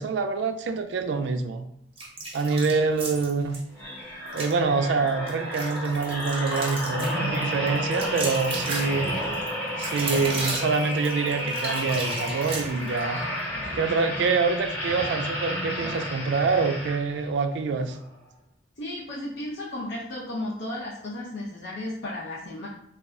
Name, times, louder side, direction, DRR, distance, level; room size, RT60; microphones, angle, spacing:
voice 1, 0.0-1.7 2.3-3.6 4.3-9.1 9.8-13.2 13.7-18.0, right 4 dB, 70° right, 8 dB, 0.3 m, -26 dB
sound 1, 2.0-3.6 4.3-4.5 5.1-13.1, right 2 dB, 30° right, 0.7 m, -34 dB
sound 2, 3.7-17.3 17.9-18.1, equal, 10° left, 0.8 m, -31 dB
voice 2, 18.8-22.7, left 1 dB, 70° left, -5 dB, 0.5 m, -34 dB
2.3 x 2.1 x 3.6 m, 0.69 s
head